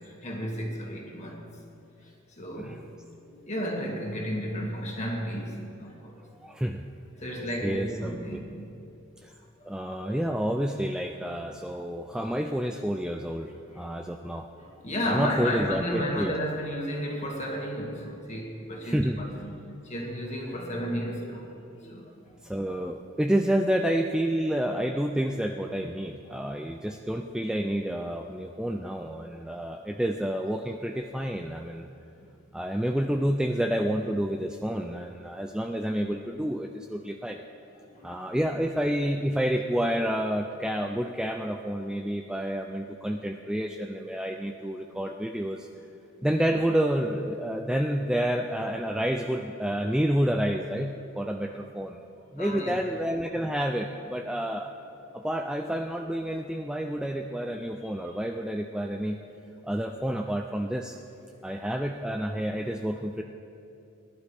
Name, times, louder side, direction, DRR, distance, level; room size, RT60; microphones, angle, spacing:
voice 1, 0.0-1.6 2.4-2.8 3.2-6.2 7.2-8.7 13.7-13.8 14.6-19.6 19.8-21.5 21.8-22.1 26.3-26.4 37.7-38.0 52.4-52.8 61.3-61.4, equal, 35° left, -1 dB, 2.0 m, -33 dB
voice 2, 6.4-6.8 7.6-8.4 9.2-9.3 9.6-14.5 15.0-16.3 18.8-19.2 22.4-31.9 32.5-37.4 38.0-45.7 46.2-52.0 52.3-54.7 55.1-59.2 59.6-61.0 61.4-63.2, equal, 5° right, 3 dB, 0.3 m, -29 dB
19.5 x 11.5 x 3.5 m, 2.7 s
head